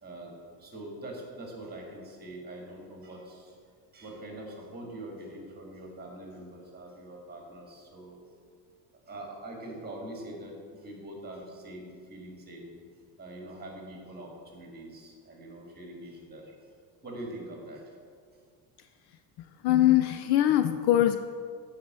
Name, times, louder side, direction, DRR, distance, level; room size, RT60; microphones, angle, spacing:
voice 1, 0.0-3.6 3.9-8.2 9.1-12.7 13.2-16.5 17.0-18.0, right 1 dB, 20° right, 0 dB, 2.0 m, -43 dB
voice 2, 19.6-21.2, left 13 dB, 60° left, 9 dB, 0.5 m, -22 dB
8.5 x 4.8 x 6.1 m, 2.1 s
cardioid pair, 125°, 46 cm